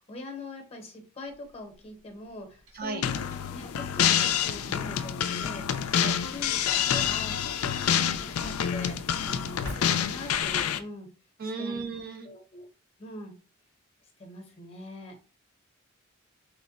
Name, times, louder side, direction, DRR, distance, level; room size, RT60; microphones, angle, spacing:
voice 1, 0.0-6.6 6.9-11.1 11.4-11.8 12.2-12.7 13.0-13.4 14.2-15.2, left 2 dB, 30° left, 4 dB, 0.8 m, -43 dB
Drawer open or close, 1.3-10.6, equal, 85° right, 1.9 m, -49 dB
sound 1, 3.0-10.8, left 9 dB, 85° left, 0.3 m, -27 dB
voice 2, 11.4-12.3, right 4 dB, 45° right, 6 dB, 0.5 m, -35 dB
3.1 x 2.1 x 3.9 m, 0.35 s
head